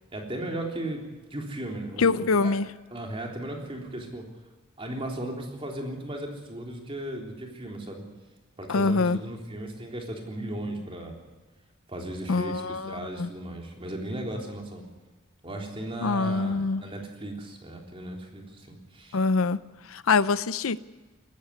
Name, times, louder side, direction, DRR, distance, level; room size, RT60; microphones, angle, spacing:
voice 1, 0.1-1.0 1.3-2.5 2.9-4.2 4.8-8.0 8.6-11.1 11.9-14.9 15.4-19.2, right 1 dB, 25° right, 1 dB, 3.6 m, -36 dB
voice 2, 2.0-2.7 8.7-9.2 12.3-13.3 16.0-16.8 19.1-19.6 19.9-20.8, left 4 dB, 80° left, 16 dB, 0.6 m, -24 dB
19.0 x 15.0 x 9.5 m, 1.2 s
head